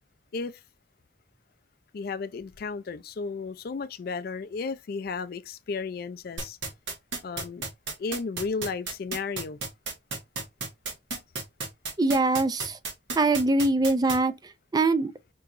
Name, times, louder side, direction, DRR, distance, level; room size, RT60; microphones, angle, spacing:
voice 1, 1.9-6.6 7.2-7.7 8.0-9.6, left 4 dB, 55° left, 0.4 m, -34 dB
sound 1, 6.4-14.2, right 3 dB, 90° right, 1.5 m, -32 dB
voice 2, 12.0-12.8 13.2-14.3 14.7-15.1, right 2 dB, 20° right, 0.4 m, -23 dB
4.6 x 2.9 x 2.5 m
head